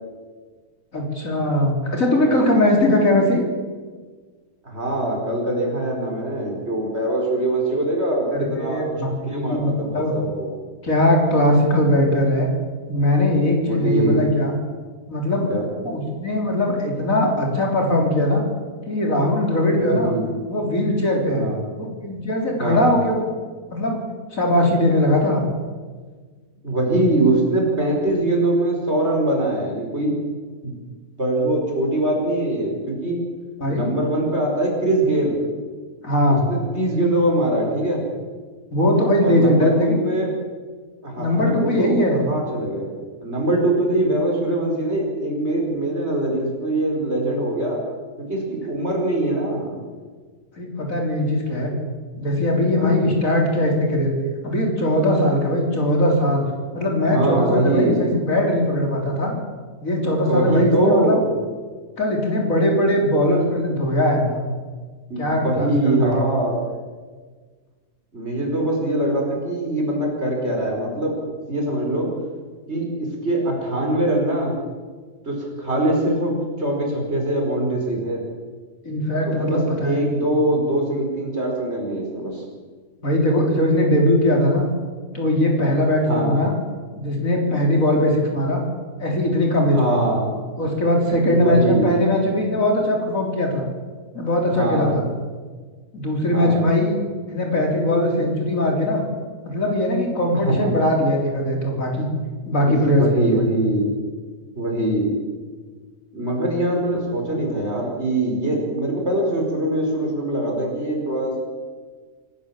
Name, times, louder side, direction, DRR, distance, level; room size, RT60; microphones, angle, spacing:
voice 1, 0.9-3.4 8.6-10.1 10.8-12.5 12.9-14.5 15.1-15.5 15.8-18.4 18.9-20.1 20.5-21.5 21.8-23.1 23.7-24.0 24.3-25.5 33.6-33.9 36.0-36.5 38.7-40.0 41.2-42.2 50.5-51.7 52.2-54.1 54.4-56.4 56.7-59.3 59.8-61.2 62.0-64.4 65.2-66.1 78.8-80.0 83.0-84.7 85.1-86.6 86.9-88.6 89.0-90.0 90.6-93.7 94.1-95.1 95.9-97.0 97.3-99.0 99.4-102.1 102.5-103.4, left 1 dB, 60° left, 1 dB, 4.3 m, -20 dB
voice 2, 4.6-8.8 9.3-10.6 13.6-14.3 15.5-15.7 19.7-20.3 21.3-21.6 22.6-22.9 26.6-30.2 30.6-30.7 31.2-33.2 33.7-35.4 36.5-38.0 39.2-40.3 41.0-47.8 48.2-49.8 52.8-53.0 57.1-58.0 60.3-61.2 65.1-66.6 68.1-72.1 72.7-74.5 75.2-78.2 79.4-82.4 86.1-86.3 89.7-90.3 91.3-91.9 94.5-95.0 96.3-96.6 100.4-100.7 102.6-103.9 104.6-105.2 106.1-111.4, right 1 dB, 45° right, 0 dB, 5.5 m, -23 dB
25.5 x 14.5 x 7.5 m, 1.5 s
omnidirectional pair, 1.6 m